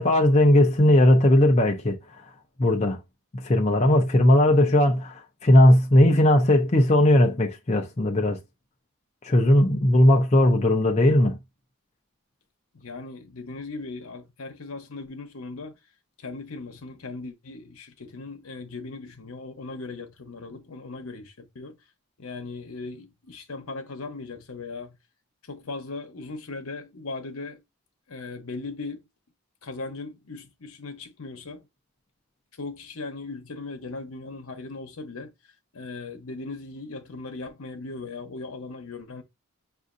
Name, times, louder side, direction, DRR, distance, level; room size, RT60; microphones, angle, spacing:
voice 1, 0.0-2.3 2.6-3.0 3.3-8.4 9.2-11.4, left 1 dB, 30° left, 0.5 m, -18 dB
voice 2, 4.4-4.7 12.7-15.7 16.2-21.8 22.2-25.0 25.5-27.6 28.1-29.0 29.6-31.6 32.6-35.3 35.7-39.2, left 3 dB, 75° left, 0.9 m, -38 dB
6.2 x 2.5 x 2.5 m
head